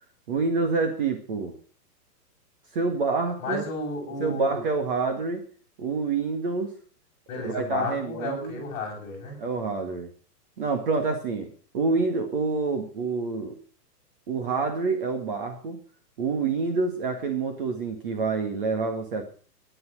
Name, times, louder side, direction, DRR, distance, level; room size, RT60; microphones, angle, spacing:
voice 1, 0.3-1.5 2.7-3.6 4.2-5.4 5.8-6.7 7.4-8.6 9.4-10.1 10.6-13.6 14.3-15.8 16.2-19.2, right 4 dB, 35° right, 4 dB, 1.9 m, -27 dB
voice 2, 3.4-4.6 7.3-9.4, left 3 dB, 20° left, -4 dB, 7.7 m, -32 dB
14.0 x 11.0 x 6.3 m, 0.41 s
hypercardioid pair, 180°, 48 cm